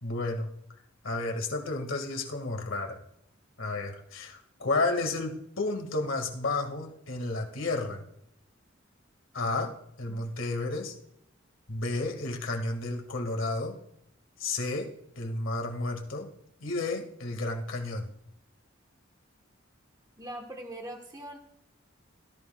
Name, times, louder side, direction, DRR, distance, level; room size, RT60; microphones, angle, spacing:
voice 1, 0.0-0.5 1.0-3.0 3.6-8.0 9.3-10.9 11.7-13.8 14.4-16.3 16.6-18.1, left 2 dB, 85° left, 3 dB, 1.8 m, -32 dB
voice 2, 20.2-21.4, right 1 dB, 20° right, 1 dB, 1.2 m, -41 dB
17.0 x 13.5 x 2.3 m, 0.78 s
head